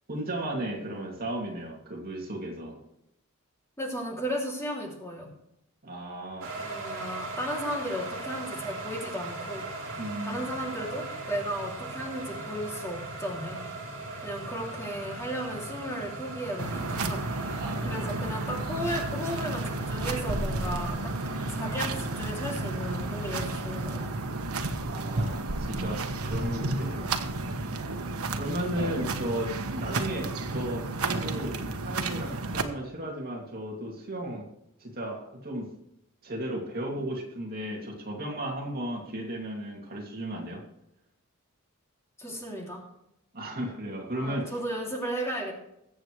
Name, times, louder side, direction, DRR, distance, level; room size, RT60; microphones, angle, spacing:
voice 1, 0.1-2.8 5.8-6.5 10.0-10.5 17.6-18.1 24.9-27.4 28.3-34.5 34.8-35.7 36.2-40.6 43.3-44.5, right 1 dB, 45° right, -1 dB, 2.6 m, -35 dB
voice 2, 3.8-5.3 6.6-9.7 10.2-13.6 14.2-21.1 21.5-24.0 42.2-42.8 44.2-45.5, equal, 15° left, -2 dB, 2.8 m, -35 dB
sound 1, 6.4-24.1, right 2 dB, 60° right, 3.9 m, -39 dB
sound 2, 16.6-32.6, right 2 dB, 80° right, 1.2 m, -32 dB
21.5 x 8.1 x 3.2 m, 0.81 s
head